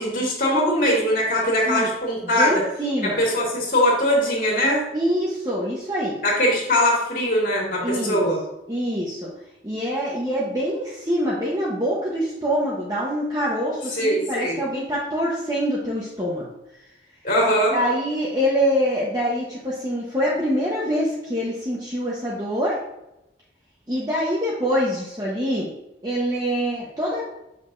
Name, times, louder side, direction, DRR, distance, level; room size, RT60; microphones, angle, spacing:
voice 1, 0.0-2.6 3.0-4.8 6.2-8.4 13.9-14.6 17.2-17.8, equal, 50° left, -3 dB, 2.2 m, -21 dB
voice 2, 2.4-3.2 4.9-6.2 7.8-8.2 8.7-9.3 9.6-16.5 17.4-22.8 23.9-25.7 26.0-27.2, equal, 20° right, -6 dB, 1.1 m, -25 dB
7.7 x 5.3 x 2.7 m, 0.87 s
head